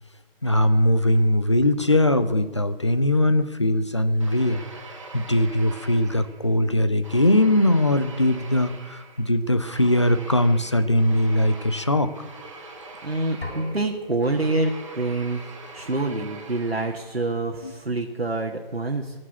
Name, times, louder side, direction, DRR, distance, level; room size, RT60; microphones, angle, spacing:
voice 1, 0.4-4.6 5.1-12.1 17.6-17.7, left 1 dB, 30° left, 11 dB, 0.6 m, -21 dB
sound 1, 4.2-6.6 7.0-17.3, right 3 dB, 30° right, 1.7 m, -43 dB
voice 2, 13.0-15.4 15.7-19.2, right 2 dB, 85° right, 1 dB, 1.6 m, -26 dB
sound 2, 13.4-15.2, left 1 dB, 90° left, 5.0 m, -40 dB
15.5 x 7.6 x 9.5 m, 1.2 s
figure-of-eight pair, 160°, 30 cm